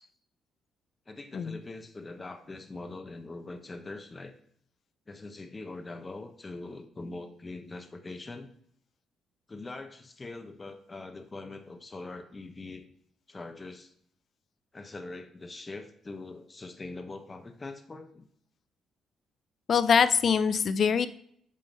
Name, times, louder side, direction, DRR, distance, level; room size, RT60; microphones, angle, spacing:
voice 1, 1.1-4.3 5.1-8.5 9.5-12.9 13.3-13.9 14.7-18.3, left 2 dB, 25° left, 7 dB, 0.9 m, -42 dB
voice 2, 19.7-21.1, left 6 dB, 55° left, 14 dB, 0.4 m, -23 dB
7.4 x 3.8 x 4.0 m, 0.65 s
cardioid pair, 90°, 0 cm